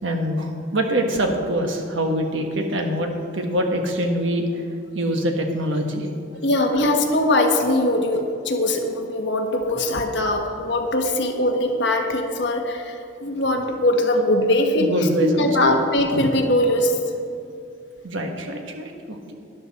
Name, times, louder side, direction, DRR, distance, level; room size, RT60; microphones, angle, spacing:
voice 1, 0.0-6.1 6.6-6.8 9.7-10.0 13.4-13.5 14.1-14.2 14.5-15.6 18.0-19.3, right 1 dB, 75° right, 3 dB, 1.5 m, -25 dB
voice 2, 6.4-14.9 15.2-17.0, left 1 dB, 60° left, 3 dB, 1.3 m, -21 dB
12.5 x 11.0 x 4.3 m, 2.5 s
head